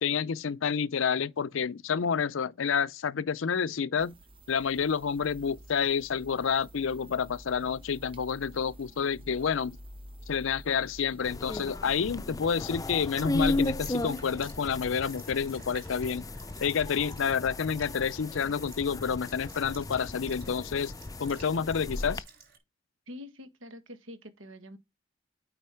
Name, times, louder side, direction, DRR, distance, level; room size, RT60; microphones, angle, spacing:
voice 1, 0.0-4.1 4.5-9.8 10.3-16.3 16.6-20.9 21.2-22.2, left 6 dB, 75° left, 0.5 m, -29 dB
sound 1, 4.0-13.9, equal, 25° right, 1.1 m, -50 dB
sound 2, 11.2-22.2, left 2 dB, 20° left, 0.5 m, -35 dB
Sink (filling or washing) / Liquid, 12.7-22.6, right 5 dB, 50° right, 5.8 m, -56 dB
voice 2, 23.1-24.8, left 1 dB, 75° right, 1.6 m, -45 dB
9.0 x 4.0 x 4.4 m
head